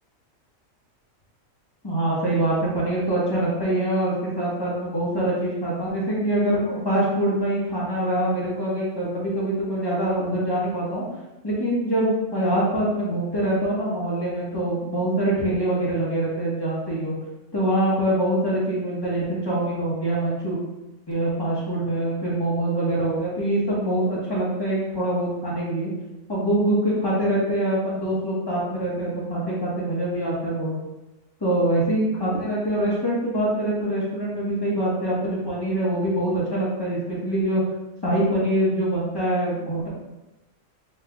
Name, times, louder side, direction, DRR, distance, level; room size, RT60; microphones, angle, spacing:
voice 1, 1.8-11.0 11.4-17.1 17.5-20.6 21.1-25.9 26.3-30.7 31.4-37.6 38.0-39.9, right 1 dB, 20° left, -6 dB, 1.2 m, -24 dB
5.3 x 3.3 x 2.3 m, 1.0 s
omnidirectional pair, 1.4 m